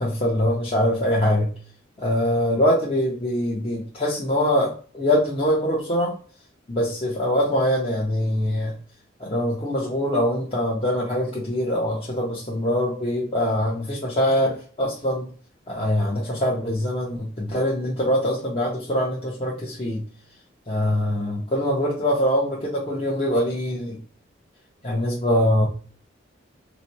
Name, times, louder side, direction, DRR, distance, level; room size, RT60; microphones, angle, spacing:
voice 1, 0.0-1.5 2.0-6.1 6.7-8.7 9.2-15.3 15.7-20.0 20.7-24.0 24.8-25.6, equal, 30° left, -6 dB, 0.8 m, -23 dB
2.9 x 2.2 x 4.1 m, 0.42 s
head